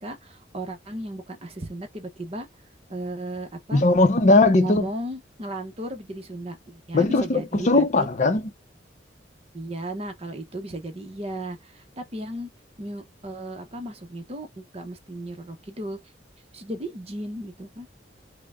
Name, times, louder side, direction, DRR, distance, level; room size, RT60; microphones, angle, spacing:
voice 1, 0.0-2.5 2.9-3.8 4.6-8.1 9.5-12.5 12.8-16.0 16.5-17.9, right 1 dB, 35° right, 0.8 m, -35 dB
voice 2, 3.7-4.9 6.9-8.4, left 2 dB, 40° left, 0.6 m, -19 dB
3.8 x 2.1 x 3.5 m
head